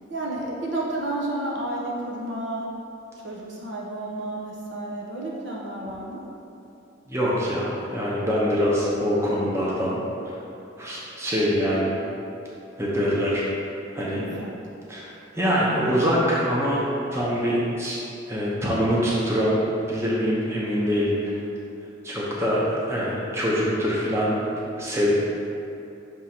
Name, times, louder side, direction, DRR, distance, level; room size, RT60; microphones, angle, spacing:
voice 1, 0.1-2.7 3.2-6.3 14.1-14.5, right 1 dB, 70° right, -4 dB, 1.0 m, -31 dB
voice 2, 7.1-10.0 10.2-10.3 10.8-12.0 12.8-13.4 13.9-14.2 14.9-16.8 17.1-18.0 18.3-19.6 19.9-21.4 22.0-24.4 24.8-25.2, equal, 15° right, -6 dB, 0.7 m, -24 dB
6.1 x 3.6 x 4.4 m, 2.7 s
head